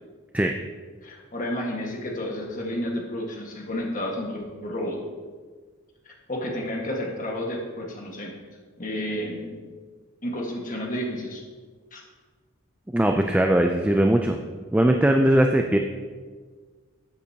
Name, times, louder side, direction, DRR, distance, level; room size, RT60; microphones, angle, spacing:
voice 1, 1.0-5.0 6.3-8.3 8.8-9.6 10.2-11.4 11.9-12.0, left 1 dB, 35° left, -1 dB, 1.6 m, -31 dB
voice 2, 12.9-14.4 14.7-15.8, right 1 dB, 5° right, 4 dB, 0.3 m, -20 dB
13.0 x 8.0 x 2.9 m, 1.5 s
head